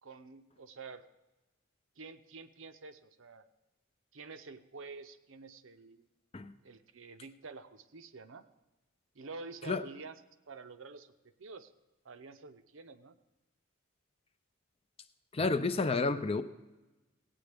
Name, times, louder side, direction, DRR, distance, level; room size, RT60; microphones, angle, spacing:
voice 1, 0.0-1.0 2.0-3.4 4.1-6.1 6.6-8.4 9.1-10.2 10.5-11.1 11.4-11.7 12.0-13.2, right 4 dB, 65° right, 9 dB, 0.6 m, -48 dB
voice 2, 15.3-16.4, left 3 dB, 30° left, 10 dB, 0.5 m, -30 dB
17.0 x 8.9 x 3.5 m, 1.1 s
head